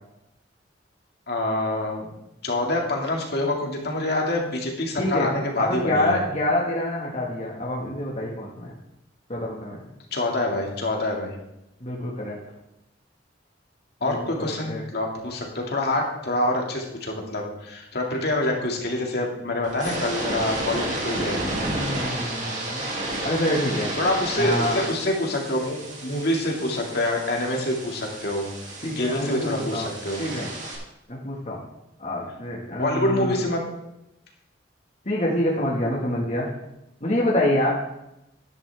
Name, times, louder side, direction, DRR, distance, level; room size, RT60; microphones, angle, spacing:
voice 1, 1.3-2.1 2.4-6.2 10.1-11.4 14.0-21.4 24.0-28.5 28.8-30.2 32.7-33.6, left 1 dB, 60° left, 0 dB, 2.2 m, -26 dB
voice 2, 5.0-5.3 5.6-8.7 9.3-9.8 11.8-12.4 14.0-14.8 21.7-22.8 23.2-23.9 24.3-24.8 28.8-29.9 30.2-30.5 31.1-31.6 32.0-33.4 35.0-36.5 37.0-37.8, left 1 dB, 40° left, -4 dB, 1.6 m, -26 dB
sound 1, 19.6-30.8, right 1 dB, 40° right, 2.5 m, -32 dB
11.5 x 10.0 x 3.4 m, 0.87 s
head